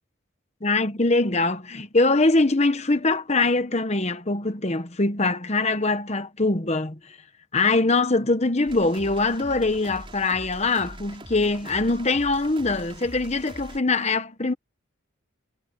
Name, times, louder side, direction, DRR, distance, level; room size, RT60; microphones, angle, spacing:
voice 1, 0.6-7.0 7.5-14.5, left 3 dB, 30° left, 1.2 m, -23 dB
sound 1, 8.7-13.8, right 1 dB, 25° right, 3.8 m, -42 dB
head